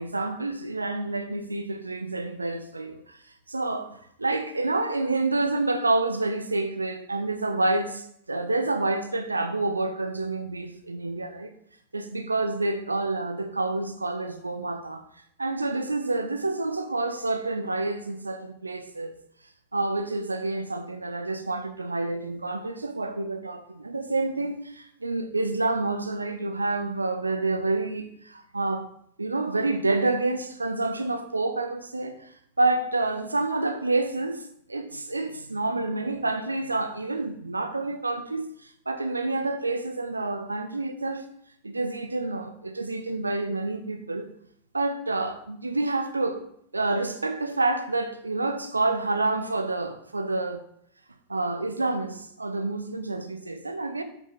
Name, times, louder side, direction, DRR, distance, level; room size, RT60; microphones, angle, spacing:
voice 1, 0.0-3.2 3.5-11.5 11.9-15.0 15.4-19.2 19.7-28.9 29.2-41.3 41.6-44.3 44.7-46.4 46.7-50.6 51.3-54.0, right 2 dB, 80° right, 0.8 m, -28 dB
8.3 x 7.6 x 3.9 m
figure-of-eight pair, 90°, 0 cm